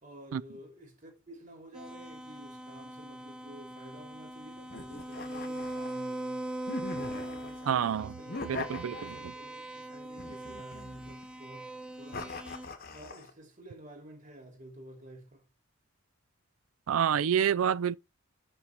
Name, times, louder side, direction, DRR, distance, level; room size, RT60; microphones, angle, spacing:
voice 1, 0.0-6.4 7.0-12.4 12.9-15.4, right 1 dB, 40° right, 2.6 m, -51 dB
sound 1, 1.7-12.7, right 1 dB, 5° right, 0.6 m, -41 dB
sound 2, 4.7-6.1 6.7-7.6 8.3-9.4 10.2-11.3 12.1-13.3, left 3 dB, 45° left, 1.0 m, -41 dB
voice 2, 7.7-8.1 8.4-9.1 16.9-17.9, right 8 dB, 85° right, 0.4 m, -28 dB
5.8 x 5.5 x 4.4 m
head